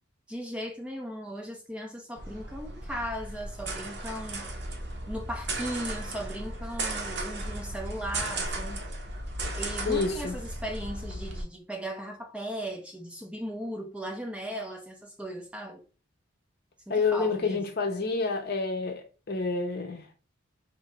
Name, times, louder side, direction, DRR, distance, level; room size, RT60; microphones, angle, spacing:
voice 1, 0.3-4.5 5.1-8.8 9.5-15.8 16.9-17.7, equal, 5° right, 0.7 m, -37 dB
sound 1, 2.2-11.4, right 2 dB, 55° right, 1.0 m, -35 dB
voice 2, 9.9-10.3 16.9-20.1, left 4 dB, 50° left, 0.8 m, -28 dB
3.7 x 2.7 x 4.7 m
head